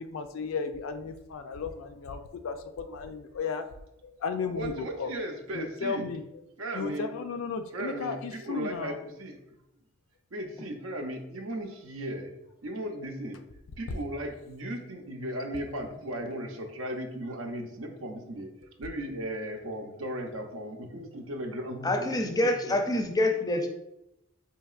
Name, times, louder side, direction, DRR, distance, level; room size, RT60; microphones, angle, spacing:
voice 1, 0.0-3.7 4.0-5.1 5.5-6.2 6.7-9.0, left 5 dB, 90° left, 8 dB, 0.4 m, -35 dB
voice 2, 4.5-6.1 6.6-7.1 7.7-9.4 10.3-12.4 12.6-13.4 13.8-18.5 18.8-23.0, right 1 dB, 80° right, 4 dB, 0.6 m, -36 dB
voice 3, 21.8-23.7, left 1 dB, 20° left, 4 dB, 0.4 m, -26 dB
4.5 x 2.8 x 2.4 m, 0.87 s
head